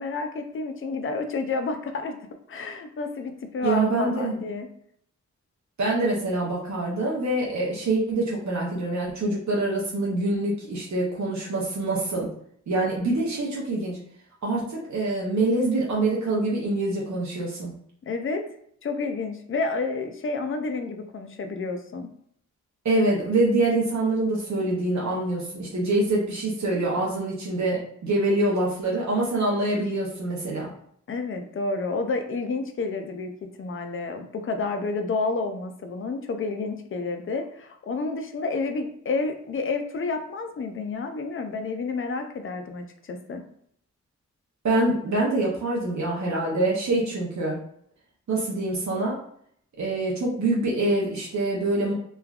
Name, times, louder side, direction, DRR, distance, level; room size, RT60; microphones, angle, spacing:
voice 1, 0.0-2.2 2.5-4.7 18.1-18.4 18.8-22.1 31.1-33.3 33.6-43.4, left 3 dB, 45° left, 6 dB, 0.5 m, -30 dB
voice 2, 3.6-4.3 5.8-12.3 12.7-14.0 14.4-17.7 22.8-30.7 44.6-47.6 48.3-49.2 49.8-51.9, right 2 dB, 65° right, -4 dB, 0.7 m, -25 dB
3.1 x 2.3 x 2.3 m, 0.67 s
cardioid pair, 45°, 30 cm